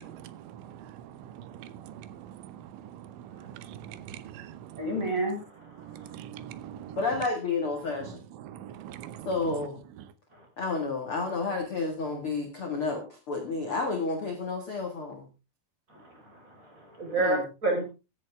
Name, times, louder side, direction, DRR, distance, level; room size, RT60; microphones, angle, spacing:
voice 1, 0.0-4.9 5.8-7.0 8.0-8.1 8.4-9.3, right 10 dB, 85° right, 3.4 m, -44 dB
voice 2, 4.8-5.8 15.9-17.8, right 2 dB, 15° right, 5.1 m, -30 dB
voice 3, 7.0-8.2 9.3-9.8 10.6-15.3 17.2-17.4, left 3 dB, 45° left, 1.8 m, -31 dB
15.0 x 11.0 x 3.6 m
omnidirectional pair, 5.4 m